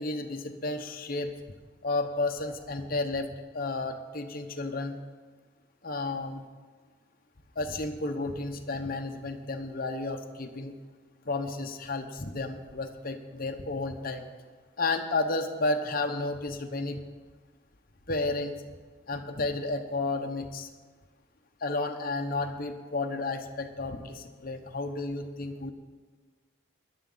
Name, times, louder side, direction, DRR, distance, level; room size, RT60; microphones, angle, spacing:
voice 1, 0.0-1.3 1.8-3.3 3.5-5.0 5.8-6.4 7.6-10.7 11.3-14.2 14.8-17.0 18.1-18.5 19.1-20.7 21.6-25.7, left 2 dB, 45° left, 5 dB, 1.0 m, -32 dB
17.0 x 11.5 x 4.0 m, 1.4 s
head